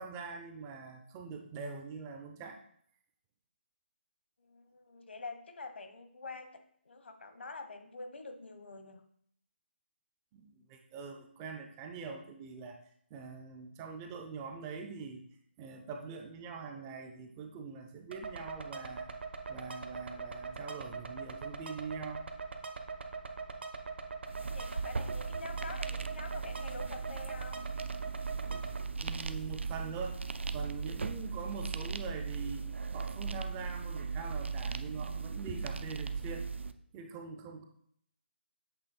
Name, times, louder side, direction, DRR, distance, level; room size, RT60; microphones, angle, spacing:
voice 1, 0.0-2.6 10.3-12.8 13.1-15.2 15.6-19.1 19.5-22.2 29.0-30.2 30.5-32.7 32.9-36.5 36.9-37.6, right 5 dB, 15° right, 3 dB, 0.4 m, -43 dB
voice 2, 4.4-9.1 24.4-27.6, left 3 dB, 70° left, 7 dB, 1.0 m, -46 dB
sound 1, 18.1-28.8, right 4 dB, 65° right, 0.9 m, -42 dB
sound 2, 24.3-36.7, right 5 dB, 85° right, 0.4 m, -38 dB
7.8 x 3.2 x 4.2 m, 0.66 s
hypercardioid pair, 160°, 6 cm